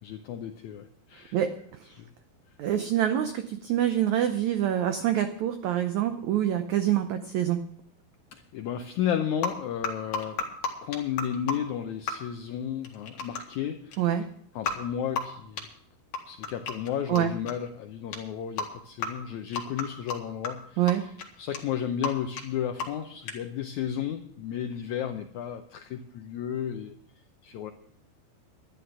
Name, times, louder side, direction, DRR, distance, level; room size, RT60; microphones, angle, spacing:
voice 1, 0.0-1.4 1.9-2.0 8.3-10.4 10.8-14.0 14.5-15.7 16.3-26.9 27.4-27.7, left 9 dB, 90° left, 7 dB, 1.6 m, -33 dB
voice 2, 2.6-7.6 14.0-14.2 17.1-17.3 20.8-21.0, right 11 dB, 80° right, 8 dB, 1.6 m, -26 dB
sound 1, 9.4-9.5 9.8-11.5 12.1-12.2 12.8-13.6 13.9-14.0 14.6-14.8 15.2-15.3 15.6-15.7 16.1-16.9 17.2-17.3 17.5-17.7 18.1-18.2 18.6-18.7 19.0-19.1 19.5-20.2 20.4-20.5 20.9-21.0 21.2-21.3 21.5-21.6 21.8-22.1 22.4-22.5 22.8-23.0 23.3-23.4, left 5 dB, 60° left, 3.0 m, -30 dB
11.5 x 11.5 x 6.1 m, 0.64 s
omnidirectional pair, 4.3 m